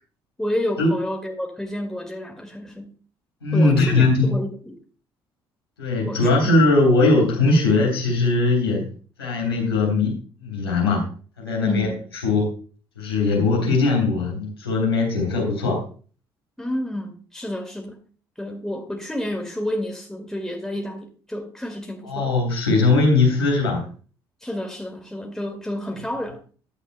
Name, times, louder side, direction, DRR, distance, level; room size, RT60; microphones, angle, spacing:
voice 1, 0.4-3.0 3.5-4.8 6.1-6.5 11.6-12.0 16.6-18.0 18.4-22.3 24.4-26.5, left 1 dB, 5° left, 2.1 m, -30 dB
voice 2, 3.4-4.3 5.8-8.9 9.2-10.1 10.4-11.1 11.4-11.9 12.2-12.5 12.9-15.8 22.0-23.9, left 3 dB, 85° left, 3.4 m, -20 dB
14.0 x 10.5 x 2.2 m
figure-of-eight pair, 50°, 13 cm